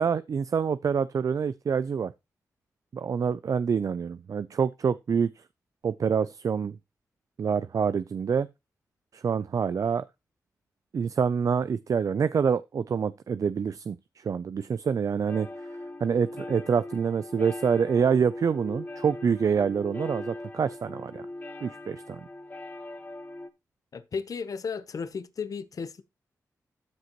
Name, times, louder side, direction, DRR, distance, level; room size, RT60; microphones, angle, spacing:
voice 1, 0.0-2.1 2.9-5.3 5.8-6.7 7.4-8.5 9.1-10.0 10.9-15.5 16.0-21.2 21.6-22.2, right 6 dB, 60° right, 0.4 m, -26 dB
sound 1, 15.3-23.5, left 2 dB, 30° left, 1.4 m, -40 dB
voice 2, 23.9-26.0, left 5 dB, 65° left, 0.8 m, -34 dB
13.0 x 6.3 x 3.0 m
cardioid pair, 60°, 6 cm